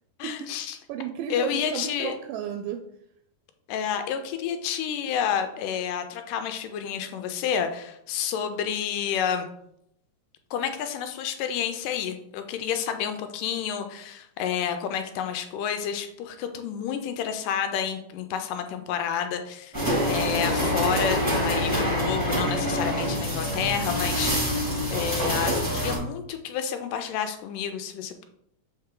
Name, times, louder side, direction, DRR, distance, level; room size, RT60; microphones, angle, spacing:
voice 1, 0.2-0.8 1.3-2.2 3.7-9.5 10.5-19.7 20.0-24.6 24.9-28.2, left 8 dB, 85° left, 7 dB, 2.1 m, -30 dB
voice 2, 0.9-2.8, right 9 dB, 85° right, 6 dB, 2.1 m, -33 dB
sound 1, 19.7-26.0, equal, 10° right, 1.2 m, -26 dB
7.2 x 4.4 x 3.7 m, 0.75 s
omnidirectional pair, 3.9 m